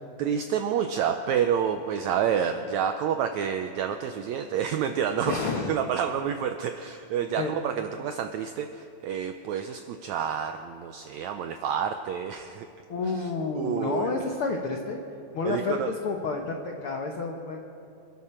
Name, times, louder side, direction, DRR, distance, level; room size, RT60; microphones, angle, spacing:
voice 1, 0.2-12.7 13.6-14.3 15.4-15.9, right 8 dB, 85° right, 7 dB, 1.6 m, -29 dB
voice 2, 5.3-5.7 7.4-7.5 12.9-15.0 15.3-17.6, left 4 dB, 75° left, 2 dB, 1.2 m, -30 dB
26.0 x 12.0 x 4.3 m, 2.6 s
omnidirectional pair, 3.9 m